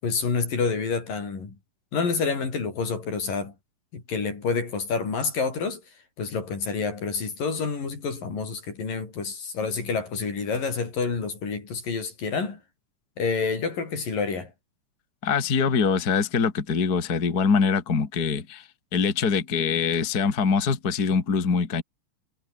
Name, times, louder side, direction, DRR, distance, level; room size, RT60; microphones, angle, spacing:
voice 1, 0.0-1.6 1.9-3.5 3.9-5.8 6.2-12.6 13.2-14.5, left 5 dB, 75° left, 7.3 m, -28 dB
voice 2, 15.2-21.8, left 5 dB, 30° left, 2.7 m, -24 dB
omnidirectional pair, 3.9 m